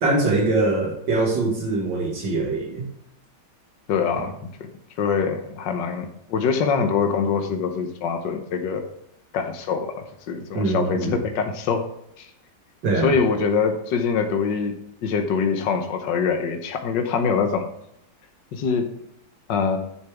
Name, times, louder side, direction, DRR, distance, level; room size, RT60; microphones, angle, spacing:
voice 1, 0.0-2.9 10.5-11.2 12.8-13.1, right 2 dB, 80° right, -1 dB, 2.5 m, -23 dB
voice 2, 3.9-4.5 5.0-8.9 9.3-11.9 12.2-12.3 13.0-17.7 18.5-18.9 19.5-19.8, left 5 dB, 80° left, 5 dB, 1.7 m, -24 dB
11.0 x 6.7 x 3.5 m, 0.77 s
omnidirectional pair, 1.9 m